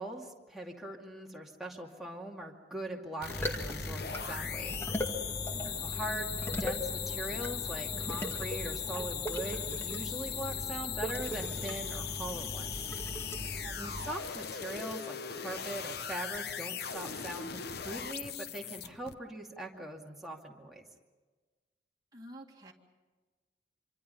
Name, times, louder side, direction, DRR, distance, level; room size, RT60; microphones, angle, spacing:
voice 1, 0.0-4.8 5.8-12.8 13.8-20.8, right 1 dB, ahead, -1 dB, 2.4 m, -41 dB
sound 1, 3.2-19.1, left 8 dB, 60° left, 0.9 m, -39 dB
sound 2, 3.3-14.1, equal, 15° left, 2.0 m, -39 dB
voice 2, 5.5-5.9 13.6-14.0 22.1-22.7, right 1 dB, 20° right, -1 dB, 2.2 m, -50 dB
26.5 x 25.0 x 5.5 m, 1.3 s
head